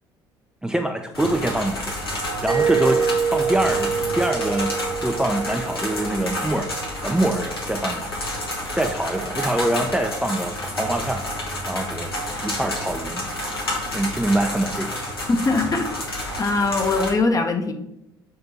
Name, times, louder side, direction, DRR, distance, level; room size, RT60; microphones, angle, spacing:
voice 1, 0.6-1.9 2.4-3.0 3.3-4.7 5.0-6.7 7.0-8.1 8.8-11.2 11.7-12.1 12.4-13.2 13.9-15.0, right 1 dB, 5° right, 3 dB, 0.5 m, -24 dB
sound 1, 1.1-17.1, left 1 dB, 85° left, 1.1 m, -30 dB
Mallet percussion, 2.5-7.1, right 6 dB, 40° right, 0.8 m, -26 dB
voice 2, 15.3-15.9 16.4-17.7, left 3 dB, 30° left, 6 dB, 0.9 m, -21 dB
6.7 x 3.4 x 4.2 m, 0.85 s
figure-of-eight pair, 55°, 12 cm